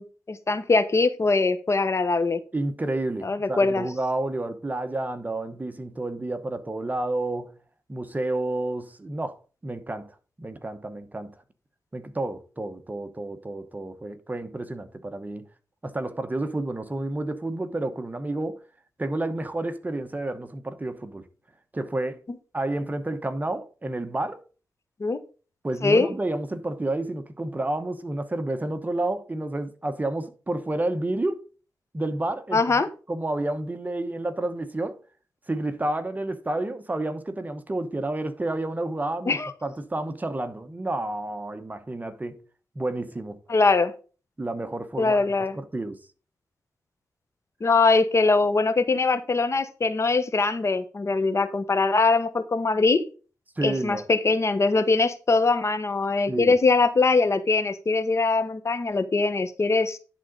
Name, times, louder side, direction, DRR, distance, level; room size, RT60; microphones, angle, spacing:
voice 1, 0.0-2.4 3.2-3.9 25.0-25.2 25.8-26.1 32.5-32.9 39.3-39.5 43.5-43.9 45.0-45.6 47.6-53.0 53.6-60.0, left 3 dB, 45° left, 1.0 m, -22 dB
voice 2, 2.5-7.5 7.9-10.1 10.4-11.3 11.9-15.5 15.8-18.6 19.0-21.3 21.7-22.2 22.5-24.4 25.6-31.4 31.9-35.0 35.5-42.4 42.7-43.4 44.4-46.0 53.6-54.1 56.3-56.6, right 2 dB, 25° right, 1.0 m, -30 dB
10.5 x 3.8 x 5.2 m
cardioid pair, 80°, 7 cm